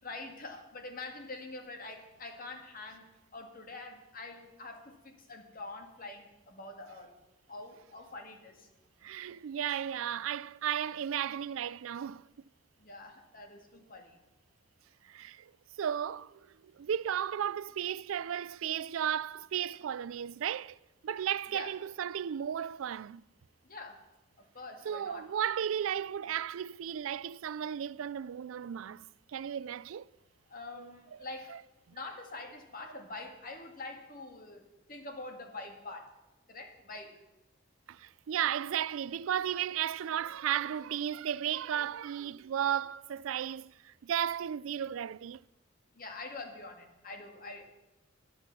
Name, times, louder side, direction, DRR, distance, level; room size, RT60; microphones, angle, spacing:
voice 1, 0.0-3.1 3.3-7.1 7.5-8.7 12.8-14.2 21.5-21.7 23.6-24.0 24.5-25.3 30.5-31.6 31.9-34.6 34.9-36.1 36.5-37.2 45.9-47.7, left 3 dB, 45° left, 2.0 m, -45 dB
voice 2, 9.0-12.3 15.0-15.5 15.8-16.5 16.7-20.8 21.0-23.2 24.9-29.1 29.3-30.1 30.7-30.9 37.9-45.4, right 9 dB, 90° right, 0.4 m, -34 dB
10.5 x 10.5 x 6.9 m
head